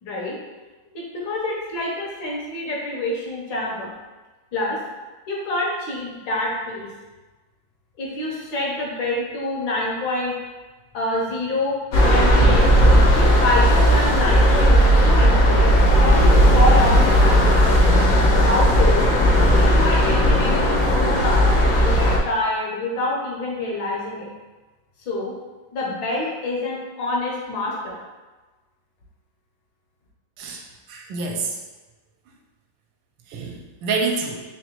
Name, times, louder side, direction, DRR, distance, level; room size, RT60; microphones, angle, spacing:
voice 1, 0.0-0.4 0.9-3.9 4.5-4.8 5.3-6.9 8.0-10.3 10.9-11.8 12.1-12.8 13.1-15.7 16.0-17.4 18.4-19.1 19.5-24.3 25.1-25.3 25.7-28.0, left 1 dB, 80° left, -3 dB, 1.7 m, -26 dB
sound 1, 11.9-22.2, equal, 65° left, 0.9 m, -15 dB
voice 2, 30.9-31.5 33.3-34.4, right 4 dB, 80° right, 1 dB, 1.3 m, -27 dB
3.9 x 3.0 x 3.0 m, 1.2 s
omnidirectional pair, 2.1 m